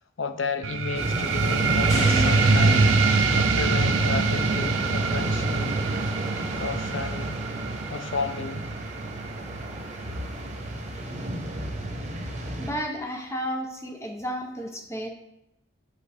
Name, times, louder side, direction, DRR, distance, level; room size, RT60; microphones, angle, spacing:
voice 1, 0.2-3.0 3.4-5.7 6.6-7.4 7.9-8.7, left 4 dB, 80° left, 9 dB, 0.6 m, -32 dB
sound 1, 0.6-11.7, right 4 dB, 85° right, 0.5 m, -25 dB
sound 2, 0.9-12.7, right 1 dB, 35° right, 0.9 m, -30 dB
sound 3, 1.9-4.2, right 1 dB, 35° left, 2.3 m, -33 dB
voice 2, 12.5-15.1, equal, 15° left, 3 dB, 0.6 m, -32 dB
6.5 x 5.4 x 3.4 m, 0.85 s
head